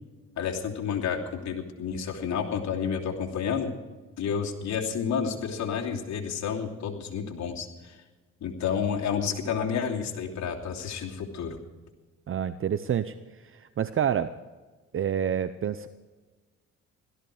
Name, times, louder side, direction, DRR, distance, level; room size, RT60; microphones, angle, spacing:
voice 1, 0.4-3.7 4.2-8.0 8.4-11.6, left 7 dB, 70° left, 0 dB, 2.9 m, -30 dB
voice 2, 12.3-13.1 13.5-14.4 14.9-15.9, right 9 dB, 45° right, 12 dB, 0.7 m, -28 dB
17.0 x 13.5 x 4.9 m, 1.3 s
cardioid pair, 90°, 30 cm